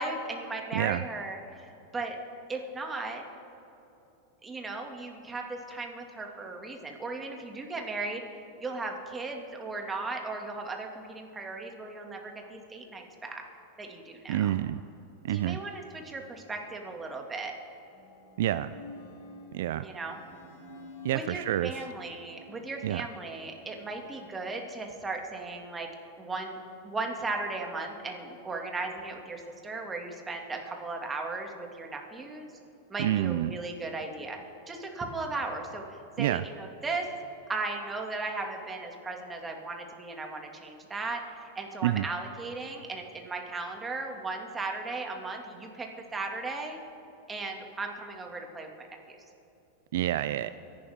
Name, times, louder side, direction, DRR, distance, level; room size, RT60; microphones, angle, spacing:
voice 1, 0.0-2.2 2.5-3.2 4.4-13.4 13.8-14.5 15.3-17.5 19.8-20.2 21.1-25.9 26.2-26.6 26.8-32.5 32.9-34.4 34.7-37.1 37.5-46.8 47.3-49.2, right 3 dB, 20° right, 2 dB, 2.2 m, -36 dB
voice 2, 14.3-14.8 15.2-15.6 18.4-18.7 19.5-19.8 21.0-21.7 22.8-23.0 33.0-33.5 36.2-36.4 41.8-42.0 49.9-50.5, right 13 dB, 70° right, 14 dB, 0.3 m, -28 dB
sound 1, 15.9-16.9 17.7-24.3, left 2 dB, 80° left, 3.4 m, -51 dB
24.5 x 11.5 x 3.7 m, 3.0 s
hypercardioid pair, 105°, 0 cm